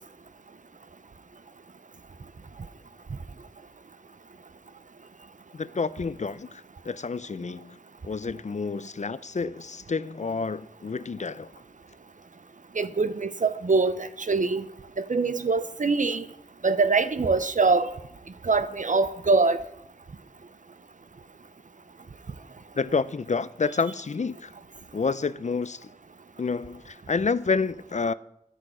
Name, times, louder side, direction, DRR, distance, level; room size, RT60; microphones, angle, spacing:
voice 1, 5.5-7.8 8.0-11.5 22.8-24.5 24.9-25.8 26.4-28.1, left 4 dB, 60° left, 0.4 m, -29 dB
voice 2, 12.8-14.6 15.0-16.3 16.6-17.9 18.4-19.6, right 4 dB, 70° right, 0.6 m, -23 dB
12.5 x 6.6 x 5.1 m
wide cardioid pair, 50°, 14 cm